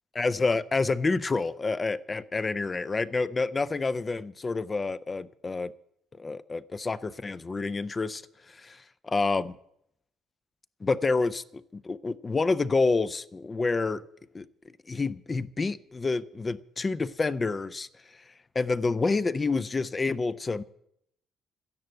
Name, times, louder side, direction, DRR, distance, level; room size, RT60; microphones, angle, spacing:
voice 1, 0.1-5.7 6.2-8.2 8.5-9.5 10.8-14.0 14.3-14.5 14.9-17.9 18.6-20.6, left 3 dB, 20° left, 15 dB, 0.4 m, -28 dB
12.5 x 11.0 x 7.9 m, 0.74 s
cardioid pair, 135°, 0 cm